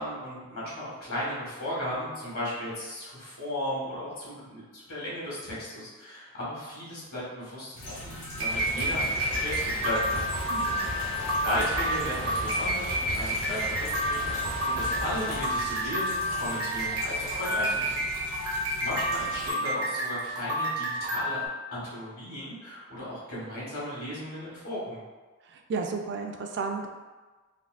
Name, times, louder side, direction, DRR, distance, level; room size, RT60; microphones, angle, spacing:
voice 1, 0.0-10.2 11.3-18.1 18.8-21.4 21.7-25.0, equal, 75° left, -7 dB, 1.5 m, -35 dB
sound 1, 7.7-19.5, equal, 60° left, 0.9 m, -41 dB
sound 2, 8.2-21.5, right 1 dB, 80° right, 0.9 m, -30 dB
sound 3, 8.5-15.4, left 1 dB, 25° left, 0.3 m, -37 dB
voice 2, 25.5-26.9, right 4 dB, 55° right, 3 dB, 0.3 m, -33 dB
3.5 x 2.5 x 2.4 m, 1.3 s
head